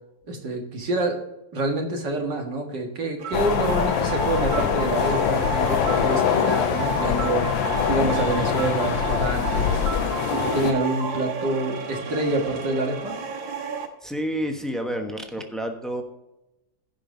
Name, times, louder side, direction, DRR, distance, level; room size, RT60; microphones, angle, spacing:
voice 1, 0.3-1.2 1.5-13.2, right 2 dB, 65° right, 2 dB, 2.4 m, -27 dB
sound 1, 3.2-13.9, right 5 dB, 80° right, 2.0 m, -31 dB
sound 2, 3.3-10.7, left 9 dB, 80° left, 1.5 m, -24 dB
voice 2, 13.8-16.0, equal, ahead, 4 dB, 0.5 m, -30 dB
16.0 x 5.5 x 3.8 m, 0.94 s
omnidirectional pair, 2.1 m